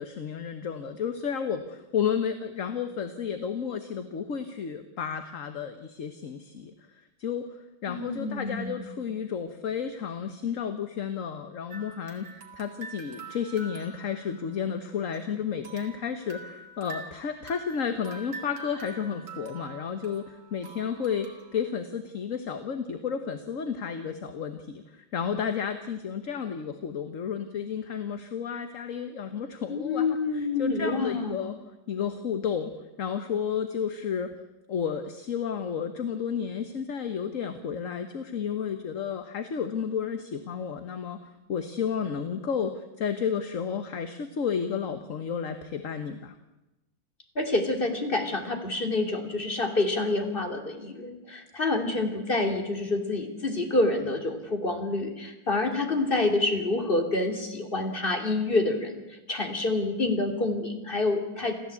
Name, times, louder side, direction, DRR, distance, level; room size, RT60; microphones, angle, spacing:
voice 1, 0.0-6.7 7.2-7.6 7.8-31.5 31.9-32.7 33.0-34.3 34.7-41.2 41.5-46.3, left 7 dB, 45° left, 8 dB, 1.4 m, -32 dB
voice 2, 7.9-8.7 29.7-31.4 47.3-61.7, left 2 dB, 25° left, 4 dB, 2.9 m, -27 dB
sound 1, 11.7-15.2 15.6-21.6, right 3 dB, 65° right, 3.1 m, -45 dB
28.5 x 14.5 x 8.5 m, 1.0 s
omnidirectional pair, 2.1 m